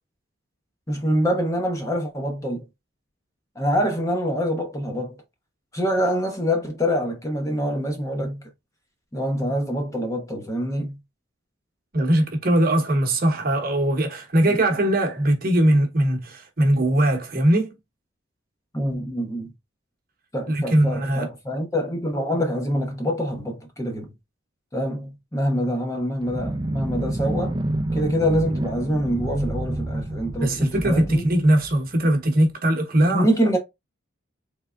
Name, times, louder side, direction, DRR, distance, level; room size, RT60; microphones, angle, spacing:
voice 1, 0.9-2.7 3.6-5.2 5.7-8.4 9.1-11.0 14.5-14.6 18.7-19.5 20.3-24.1 24.7-27.6 27.9-31.3 33.0-33.6, equal, 15° left, 0.8 m, -25 dB
voice 2, 11.9-17.7 20.5-21.3 30.4-33.3, right 1 dB, 45° right, 1.0 m, -20 dB
sound 1, 26.2-32.2, right 1 dB, 20° right, 0.5 m, -28 dB
3.6 x 3.3 x 2.4 m
head